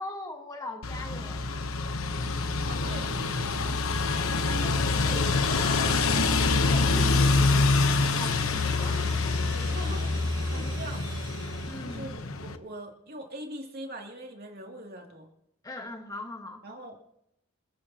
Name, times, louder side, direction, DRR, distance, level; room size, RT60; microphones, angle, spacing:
voice 1, 0.0-1.5 4.1-5.8 6.5-7.3 8.2-8.3 8.6-9.4 10.5-10.7 11.7-12.1 15.6-16.6, left 1 dB, 15° left, 3 dB, 1.4 m, -41 dB
sound 1, 0.8-12.6, left 3 dB, 75° left, 1.0 m, -26 dB
voice 2, 2.6-3.8 7.1-7.2 8.1-8.3 9.5-11.3 11.8-15.3 16.6-17.0, right 1 dB, 45° right, 1 dB, 2.7 m, -42 dB
sound 2, 4.9-11.9, right 2 dB, 20° right, 7.5 m, -45 dB
28.5 x 14.0 x 2.9 m, 0.77 s
head